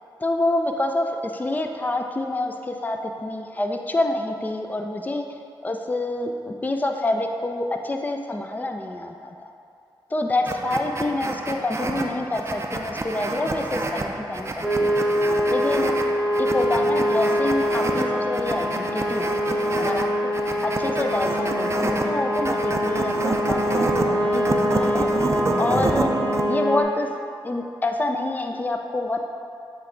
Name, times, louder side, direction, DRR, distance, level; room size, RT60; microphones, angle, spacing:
voice 1, 0.2-9.3 10.1-14.9 15.5-15.9 16.4-20.1 20.6-24.4 24.7-25.1 25.6-26.1 26.5-27.1 27.4-29.2, left 2 dB, 20° left, 4 dB, 0.4 m, -27 dB
sound 1, 10.5-26.5, right 2 dB, 30° right, 0.5 m, -28 dB
sound 2, 14.6-26.8, equal, ahead, 0.9 m, -24 dB
7.9 x 3.3 x 3.8 m, 2.5 s
cardioid pair, 60°, 9 cm